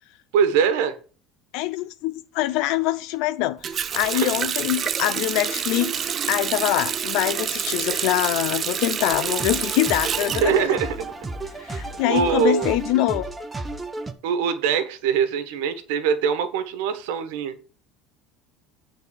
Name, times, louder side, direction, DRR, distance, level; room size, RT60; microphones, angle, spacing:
voice 1, 0.3-1.0 4.2-4.4 10.4-11.1 11.6-11.8 12.1-12.8 14.2-17.5, right 7 dB, 80° right, 1.4 m, -23 dB
voice 2, 1.5-10.7 11.6-13.3, left 15 dB, 60° left, 0.4 m, -24 dB
Water tap faucet, 3.6-11.4 11.7-12.7, right 8 dB, 25° right, 0.4 m, -28 dB
sound 1, 9.1-14.1, right 2 dB, 10° right, 0.8 m, -33 dB
9.0 x 4.0 x 7.1 m
cardioid pair, 165°, 0 cm